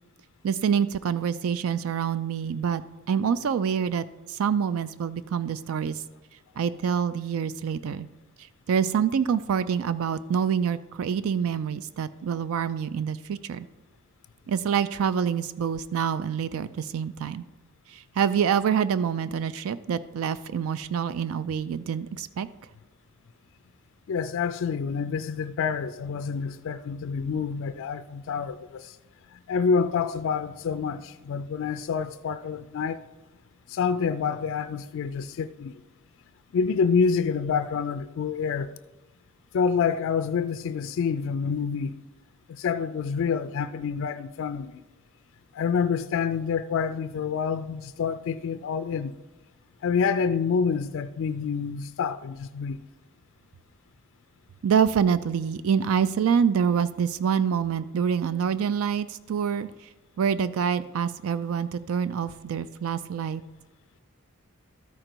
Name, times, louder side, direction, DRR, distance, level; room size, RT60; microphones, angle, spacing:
voice 1, 0.4-2.8 3.1-6.0 6.6-8.1 8.7-13.7 14.5-17.4 17.9-22.5 54.6-59.7 60.2-63.4, right 7 dB, 70° right, 0.4 m, -26 dB
voice 2, 24.1-29.0 29.3-33.0 33.7-35.8 36.5-38.7 39.5-42.0 42.5-44.8 45.5-49.2 49.8-52.8, left 6 dB, 60° left, 0.3 m, -27 dB
13.0 x 5.1 x 4.5 m
head